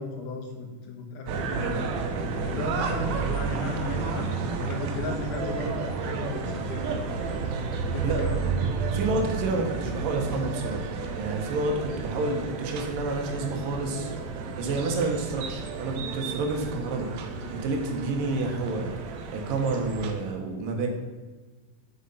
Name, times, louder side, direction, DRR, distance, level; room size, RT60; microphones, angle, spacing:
voice 1, 0.0-1.9 2.5-4.3 4.5-7.2 7.8-8.7, left 3 dB, 75° left, 2 dB, 2.8 m, -35 dB
sound 1, 1.3-20.1, right 5 dB, 70° right, 1.9 m, -31 dB
voice 2, 8.0-8.4 8.9-10.9 11.2-14.1 14.6-17.2 17.5-19.0 19.3-20.9, right 3 dB, 85° right, 3 dB, 3.0 m, -29 dB
8.1 x 6.5 x 5.6 m, 1.3 s
omnidirectional pair, 3.8 m